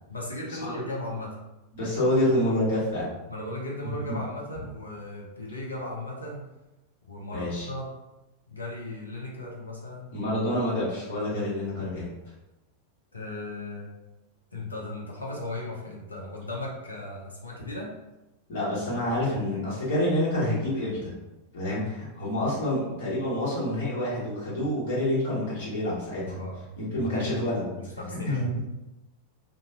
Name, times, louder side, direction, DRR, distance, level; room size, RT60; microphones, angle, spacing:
voice 1, 0.1-1.4 3.3-6.4 7.0-7.9 8.5-10.1 13.1-13.9 14.5-17.9 26.2-26.6 26.9-27.3 27.8-28.5, left 2 dB, 80° left, -3 dB, 0.5 m, -36 dB
voice 2, 1.7-3.1 4.1-4.2 7.3-7.7 10.1-12.1 18.5-21.1 21.5-26.4 26.8-27.6 28.1-28.6, left 1 dB, 55° left, -7 dB, 1.3 m, -27 dB
2.5 x 2.2 x 2.9 m, 1.0 s
figure-of-eight pair, 90°, 0 cm